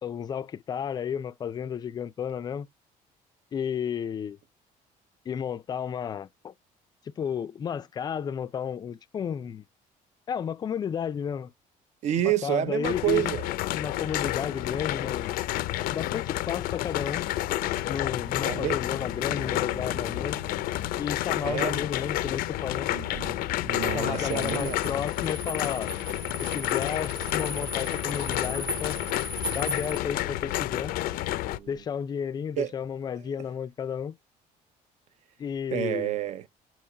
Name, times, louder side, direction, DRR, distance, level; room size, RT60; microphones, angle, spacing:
voice 1, 0.0-2.7 3.5-4.4 5.3-6.5 7.2-9.6 10.3-11.5 12.2-13.3 13.7-15.3 15.9-17.3 17.9-20.4 21.0-22.9 23.9-25.9 26.4-29.0 29.5-31.0 31.7-34.2 35.4-36.1, left 8 dB, 30° left, 0.4 m, -32 dB
voice 2, 12.0-13.5 18.4-18.8 21.4-21.8 22.9-23.4 23.6-24.8 32.6-32.7 35.7-36.5, right 12 dB, 55° right, 0.7 m, -28 dB
sound 1, 12.8-31.6, left 16 dB, 85° left, 0.5 m, -30 dB
sound 2, 13.9-31.9, right 8 dB, 85° right, 1.0 m, -49 dB
sound 3, 24.1-30.0, equal, 30° right, 1.1 m, -38 dB
7.1 x 2.9 x 4.7 m
cardioid pair, 170°, 15 cm